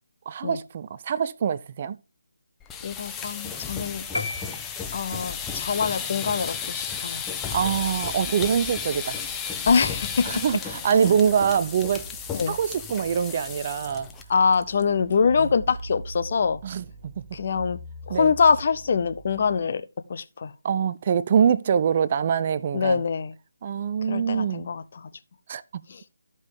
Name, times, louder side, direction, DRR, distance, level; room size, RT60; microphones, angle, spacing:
voice 1, 0.3-2.0 7.5-9.2 10.2-12.0 12.5-14.1 15.4-15.5 16.6-17.2 18.1-18.3 20.6-23.0 23.6-24.7 25.5-25.8, right 7 dB, 35° right, 0.4 m, -24 dB
sound 1, 2.6-14.2 14.5-14.8 15.1-15.2 15.6-16.0, left 7 dB, 10° left, 0.7 m, -33 dB
voice 2, 2.8-4.0 4.9-7.2 9.7-10.3 12.3-12.5 14.3-16.6 17.3-17.8 18.1-19.8 20.1-20.5 22.7-23.3 24.1-25.1 25.9-26.0, left 5 dB, 45° left, 0.8 m, -24 dB
sound 2, 4.1-5.4, left 3 dB, 85° left, 1.5 m, -34 dB
sound 3, 8.1-19.6, right 2 dB, 15° right, 3.6 m, -44 dB
13.5 x 5.3 x 3.8 m
figure-of-eight pair, 150°, 0 cm